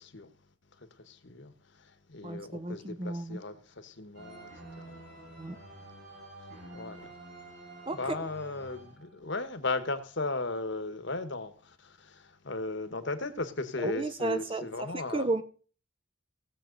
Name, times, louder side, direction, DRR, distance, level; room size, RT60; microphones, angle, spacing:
voice 1, 0.0-5.7 6.7-7.2 7.9-15.3, left 2 dB, 55° left, 1.3 m, -37 dB
voice 2, 2.2-3.4 5.4-5.6 7.9-8.0 13.8-15.4, right 2 dB, 25° right, 0.6 m, -33 dB
sound 1, 4.1-9.4, right 2 dB, 55° right, 6.9 m, -49 dB
18.0 x 7.4 x 3.9 m
head